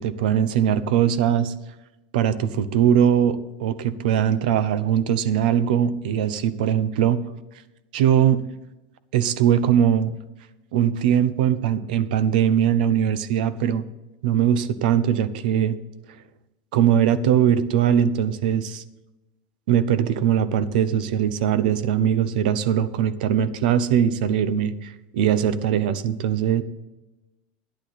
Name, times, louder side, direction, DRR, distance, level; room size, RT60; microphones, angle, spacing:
voice 1, 0.0-1.5 2.1-7.2 7.9-8.4 9.1-10.1 10.7-13.9 14.2-15.8 16.7-18.8 19.7-26.6, right 9 dB, 75° right, 14 dB, 0.8 m, -21 dB
11.5 x 10.5 x 4.1 m, 1.0 s
supercardioid pair, 180°, 5 cm